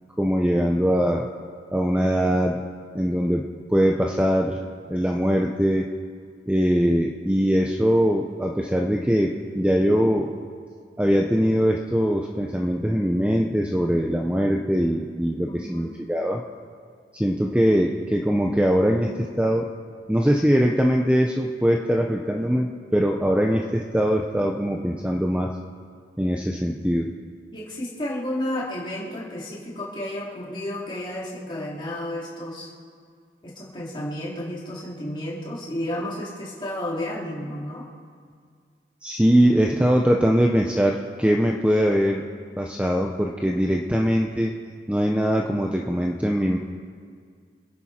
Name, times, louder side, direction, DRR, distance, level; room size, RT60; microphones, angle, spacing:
voice 1, 0.2-1.3 1.7-2.6 2.9-4.6 4.9-5.9 6.5-10.3 11.0-16.4 17.1-19.7 20.1-25.5 26.2-27.1 39.0-42.2 42.6-44.5 44.9-46.6, equal, 5° right, 1 dB, 0.6 m, -22 dB
voice 2, 15.4-15.9 27.5-32.7 33.4-37.8, left 1 dB, 25° left, -6 dB, 3.2 m, -32 dB
26.0 x 10.5 x 4.3 m, 2.1 s
head